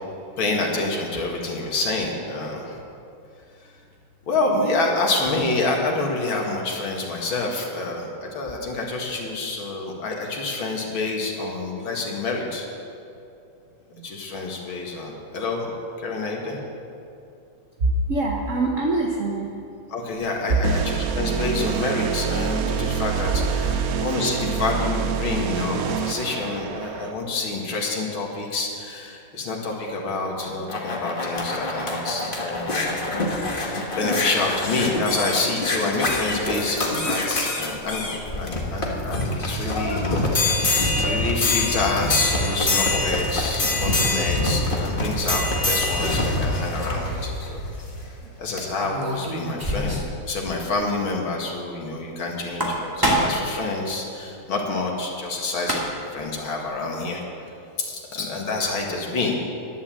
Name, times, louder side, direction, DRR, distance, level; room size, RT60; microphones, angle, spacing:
voice 1, 0.4-2.8 4.3-12.6 14.0-15.7 16.0-16.6 19.9-32.9 33.3-40.3 41.0-47.6 48.4-57.2 57.8-59.3, left 3 dB, 75° left, -1 dB, 2.7 m, -27 dB
voice 2, 17.8-19.5 20.5-20.6 23.7-23.9 33.7-34.2 46.4-46.6, right 2 dB, 45° right, 0 dB, 1.2 m, -25 dB
sound 1, 20.6-27.1, right 7 dB, 85° right, 0.7 m, -26 dB
sound 2, 30.4-48.0 48.6-48.7, left 2 dB, 25° left, 1.5 m, -25 dB
sound 3, 48.8-50.2 50.5-50.6 50.9-51.0 52.4-53.5 55.3-55.4 55.6-56.1, equal, 10° right, 2.0 m, -25 dB
11.5 x 11.0 x 7.5 m, 2.6 s
omnidirectional pair, 2.3 m